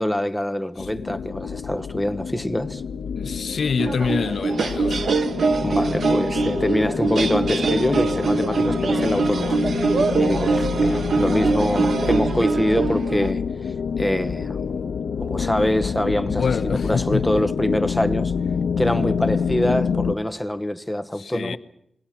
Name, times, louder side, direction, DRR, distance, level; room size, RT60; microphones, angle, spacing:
voice 1, 0.0-2.8 5.6-9.9 10.1-14.6 15.2-18.3 18.8-21.6, left 1 dB, 5° left, 1.1 m, -25 dB
sound 1, 0.8-20.2, left 6 dB, 85° left, 1.0 m, -27 dB
voice 2, 0.8-1.3 3.2-5.0 10.8-11.1 16.2-17.4 21.1-21.6, left 5 dB, 65° left, 0.9 m, -27 dB
sound 2, 3.8-13.3, right 4 dB, 60° right, 1.3 m, -23 dB
28.0 x 20.5 x 5.9 m
wide cardioid pair, 120°, 0 cm